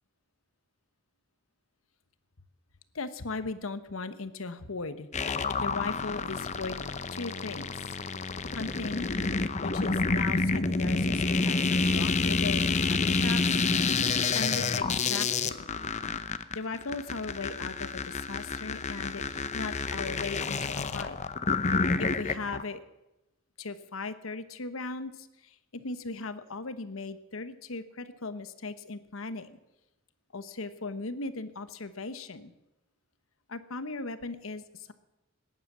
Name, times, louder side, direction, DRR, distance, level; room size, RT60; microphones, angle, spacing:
voice 1, 2.9-6.8 7.1-7.9 8.5-9.1 9.6-13.5 14.3-15.7 16.5-21.2 22.0-22.8 23.6-29.6 30.3-32.5 33.5-34.9, left 3 dB, 80° left, 12 dB, 1.1 m, -38 dB
sound 1, 5.1-22.6, left 4 dB, 35° left, 0.7 m, -29 dB
19.0 x 10.0 x 7.3 m, 0.95 s
head